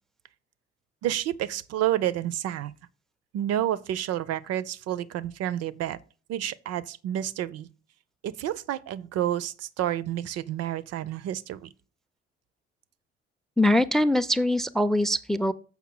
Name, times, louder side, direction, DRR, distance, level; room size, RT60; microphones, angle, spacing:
voice 1, 1.0-2.7 3.3-6.0 6.3-7.7 8.2-11.7, right 12 dB, 55° right, 0.5 m, -29 dB
voice 2, 13.6-15.5, left 1 dB, ahead, 0.4 m, -23 dB
7.2 x 5.6 x 3.8 m
figure-of-eight pair, 40°, 31 cm